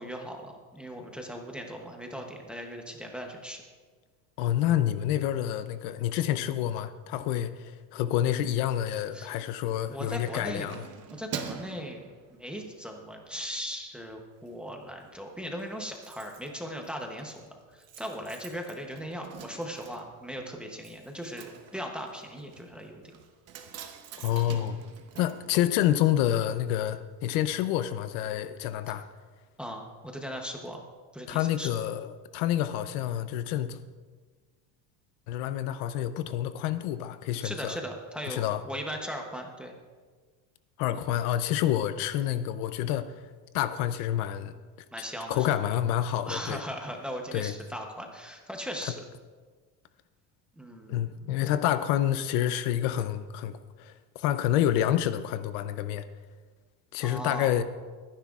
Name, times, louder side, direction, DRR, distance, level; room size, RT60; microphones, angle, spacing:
voice 1, 0.0-3.6 9.1-9.3 9.9-10.7 11.1-23.0 29.6-30.8 31.1-31.7 37.4-39.7 44.9-45.5 46.3-49.0 50.6-51.4 57.0-57.6, equal, ahead, 1 dB, 0.7 m, -38 dB
voice 2, 4.4-10.8 24.2-24.8 25.2-29.1 31.3-33.8 35.3-37.8 38.3-38.6 40.8-43.2 43.5-44.6 45.3-46.6 47.3-47.5 48.8-48.9 50.9-56.0 56.9-57.6, left 11 dB, 60° left, 12 dB, 0.6 m, -28 dB
Keys jangling, 9.7-12.8 13.3-13.5 13.8-14.5 14.8-14.9 15.1-15.2 15.4-26.3 26.5-26.6, right 7 dB, 35° right, 0.9 m, -45 dB
22.5 x 10.0 x 2.4 m, 1.4 s
cardioid pair, 175°, 43 cm